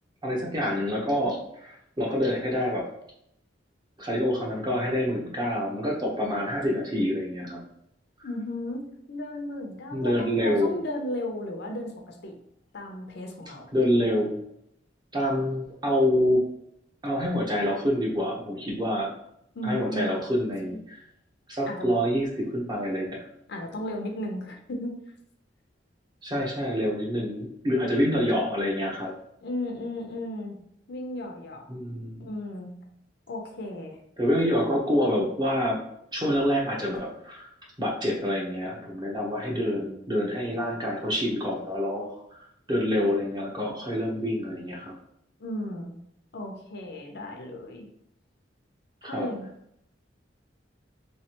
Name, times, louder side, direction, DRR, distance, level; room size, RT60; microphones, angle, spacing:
voice 1, 0.2-2.8 4.0-7.6 9.9-10.8 13.7-14.4 15.1-16.4 17.0-19.1 19.6-21.0 21.5-23.2 26.2-29.1 31.7-32.3 34.2-35.8 36.1-37.5 37.8-42.4 42.7-44.9 49.0-49.3, equal, 25° right, -2 dB, 0.9 m, -27 dB
voice 2, 8.2-8.8 9.1-12.3 12.7-13.7 19.5-20.1 21.6-21.9 23.5-24.9 29.4-30.6 30.9-31.7 32.1-32.7 33.3-34.0 45.4-45.9 46.3-47.9 49.0-49.5, left 1 dB, 65° left, 2 dB, 0.6 m, -35 dB
3.3 x 3.2 x 2.9 m, 0.74 s
head